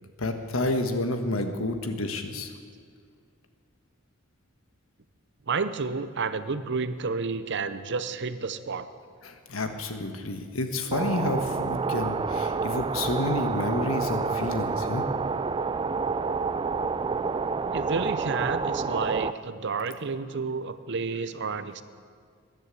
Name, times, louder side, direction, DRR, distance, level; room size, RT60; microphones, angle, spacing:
voice 1, 0.2-2.5 9.2-15.1, left 2 dB, 75° left, 7 dB, 1.4 m, -29 dB
voice 2, 5.5-8.9 17.7-21.8, right 4 dB, 55° right, 12 dB, 0.7 m, -30 dB
sound 1, 10.9-19.3, right 4 dB, 25° right, 0.4 m, -28 dB
14.5 x 10.5 x 8.4 m, 2.1 s
head